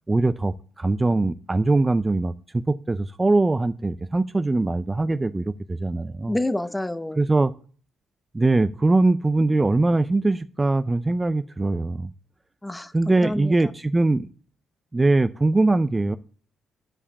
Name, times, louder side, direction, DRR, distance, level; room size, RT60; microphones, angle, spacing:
voice 1, 0.1-6.4 7.2-7.5 8.3-12.1 12.9-14.3 14.9-16.2, right 2 dB, 20° right, 0.4 m, -22 dB
voice 2, 6.3-7.2 12.6-13.5, left 1 dB, 10° left, 0.7 m, -28 dB
9.9 x 5.0 x 6.9 m
cardioid pair, 90°, 0 cm